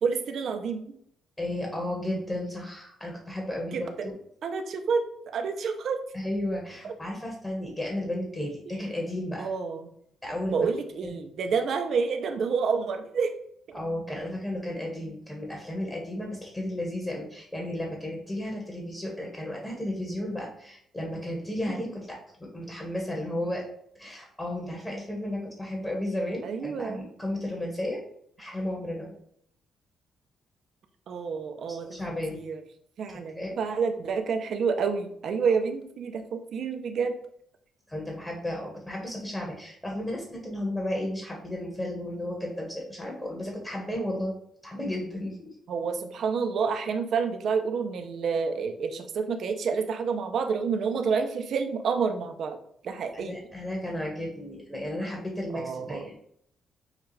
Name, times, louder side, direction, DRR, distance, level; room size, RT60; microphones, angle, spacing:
voice 1, 0.0-0.9 3.7-4.1 4.4-6.0 6.8-6.9 8.7-8.8 9.4-9.9 10.5-13.3 13.7-13.8 21.7-21.8 26.4-27.0 31.1-31.9 32.3-32.6 33.0-37.1 45.7-52.6 52.8-53.3 55.5-56.0, right 5 dB, 65° right, 6 dB, 0.6 m, -29 dB
voice 2, 1.4-4.1 6.1-9.5 10.2-10.7 11.0-11.1 11.4-11.5 13.7-23.6 23.9-28.0 28.4-29.1 31.7-32.4 33.1-33.5 37.9-44.3 44.6-45.5 53.1-56.1, left 1 dB, 20° left, -1 dB, 1.3 m, -33 dB
6.4 x 2.4 x 3.2 m, 0.69 s
cardioid pair, 90°, 0 cm